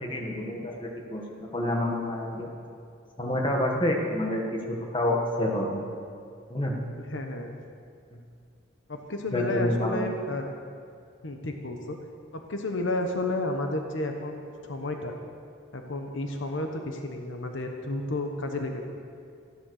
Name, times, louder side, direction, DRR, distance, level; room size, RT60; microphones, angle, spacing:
voice 1, 0.0-2.5 3.2-5.8 6.5-6.8 9.3-10.1, left 1 dB, 25° left, 0 dB, 1.6 m, -28 dB
voice 2, 7.0-7.6 8.9-10.5 11.2-12.0 12.3-15.2 15.7-19.0, left 2 dB, 70° left, 4 dB, 1.1 m, -32 dB
13.5 x 11.5 x 6.5 m, 2.4 s
head